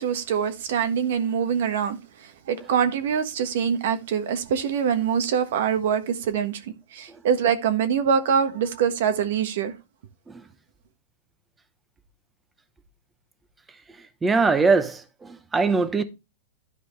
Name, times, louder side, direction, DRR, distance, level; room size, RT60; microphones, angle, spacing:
voice 1, 0.0-6.6 6.9-9.7, right 7 dB, 70° right, 1.3 m, -24 dB
voice 2, 14.2-16.0, right 4 dB, 10° right, 0.9 m, -22 dB
11.5 x 5.0 x 3.3 m
hypercardioid pair, 140°, 0 cm